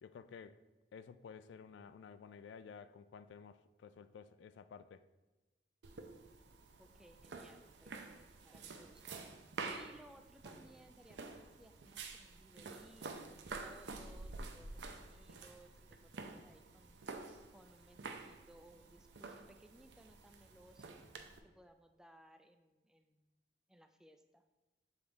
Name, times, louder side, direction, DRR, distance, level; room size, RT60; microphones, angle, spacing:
voice 1, 0.0-0.6 0.9-5.0, left 6 dB, 85° left, 0.3 m, -53 dB
sound 1, 5.8-21.4, right 3 dB, 75° right, 0.6 m, -49 dB
voice 2, 6.8-23.3 23.7-24.4, right 1 dB, 5° right, 0.3 m, -63 dB
7.1 x 3.4 x 3.8 m
head